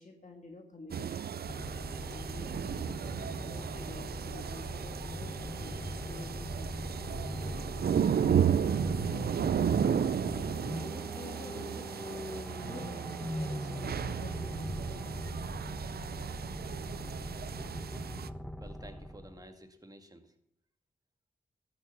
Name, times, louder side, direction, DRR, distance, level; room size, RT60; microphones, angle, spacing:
voice 1, 0.0-1.4 1.9-6.9 8.7-9.5 10.9-15.2, left 3 dB, 45° left, 2 dB, 1.8 m, -50 dB
sound 1, 0.9-18.3, right 8 dB, 65° right, 0.5 m, -34 dB
sound 2, 1.4-19.5, equal, 5° left, 1.3 m, -40 dB
voice 2, 18.6-20.3, right 1 dB, 20° right, 5 dB, 2.0 m, -51 dB
13.0 x 7.0 x 7.0 m, 0.80 s
cardioid pair, 45°, 17 cm